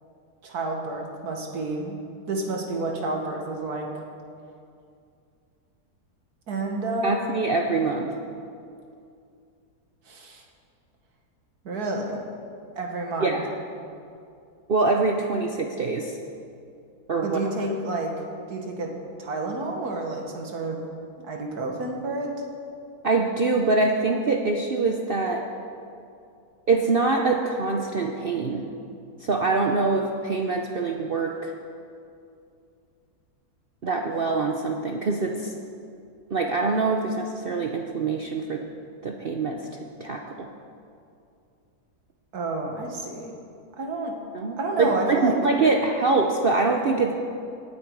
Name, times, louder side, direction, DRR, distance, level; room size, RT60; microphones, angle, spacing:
voice 1, 0.4-2.0 2.3-3.9 6.5-7.2 10.1-10.4 11.6-12.2 12.8-13.4 17.2-18.1 18.5-18.9 19.2-20.8 21.2-22.3 42.3-43.3 43.8-44.2 44.6-45.4, right 2 dB, 70° right, 1 dB, 2.1 m, -29 dB
voice 2, 7.0-8.2 13.2-13.5 14.7-16.2 17.1-17.4 23.0-25.4 26.7-28.7 29.2-31.5 33.8-35.5 36.3-38.6 39.0-39.6 40.0-40.5 44.3-47.1, right 3 dB, 50° right, 2 dB, 0.7 m, -24 dB
17.5 x 9.3 x 4.7 m, 2.5 s
omnidirectional pair, 1.7 m